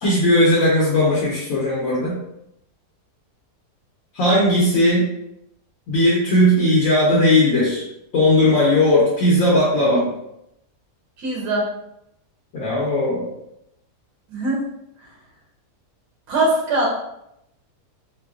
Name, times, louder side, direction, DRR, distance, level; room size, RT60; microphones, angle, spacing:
voice 1, 0.0-2.2 4.1-5.1 5.9-7.8 8.1-10.1 12.5-13.3, left 1 dB, 65° left, -6 dB, 1.1 m, -17 dB
voice 2, 11.2-11.7 14.3-14.7 16.3-16.9, right 2 dB, 90° right, -2 dB, 1.5 m, -21 dB
4.5 x 2.2 x 2.3 m, 0.81 s
omnidirectional pair, 1.7 m